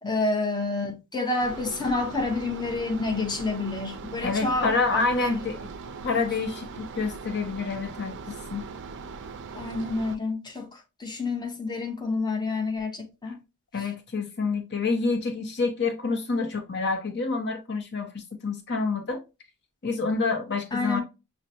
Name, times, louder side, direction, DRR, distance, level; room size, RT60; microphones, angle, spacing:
voice 1, 0.0-5.4 9.5-13.4 13.8-13.9 20.7-21.0, left 3 dB, 20° left, 0.8 m, -29 dB
sound 1, 1.4-10.2, right 5 dB, 55° right, 0.4 m, -40 dB
voice 2, 4.2-5.7 6.0-8.7 13.3-13.4 13.7-19.2 19.8-21.0, left 4 dB, 50° left, 0.8 m, -28 dB
6.2 x 2.1 x 2.8 m
head